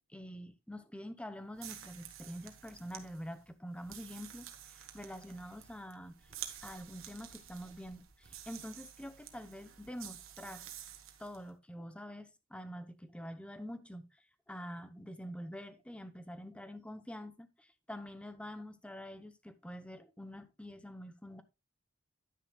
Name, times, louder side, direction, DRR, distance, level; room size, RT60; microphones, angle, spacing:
voice 1, 0.0-6.2 6.6-10.7 11.2-14.1 14.5-21.4, equal, 5° left, 0.7 m, -46 dB
sound 1, 1.5-11.4, right 10 dB, 70° right, 1.4 m, -50 dB
10.5 x 9.6 x 2.3 m
head